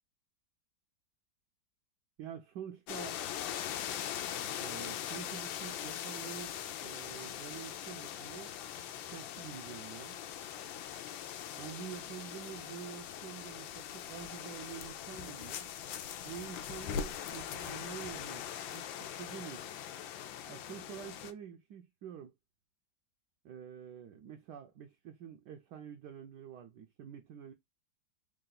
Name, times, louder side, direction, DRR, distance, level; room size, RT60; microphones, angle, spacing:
voice 1, 2.2-3.2 4.5-6.6 6.8-8.5 9.1-10.3 11.5-15.7 16.2-18.5 18.7-18.9 19.2-19.7 20.5-22.3 23.4-27.5, right 9 dB, 70° right, 1.1 m, -47 dB
sound 1, 2.9-21.3, left 9 dB, 90° left, 1.3 m, -41 dB
3.7 x 2.4 x 3.9 m
omnidirectional pair, 2.0 m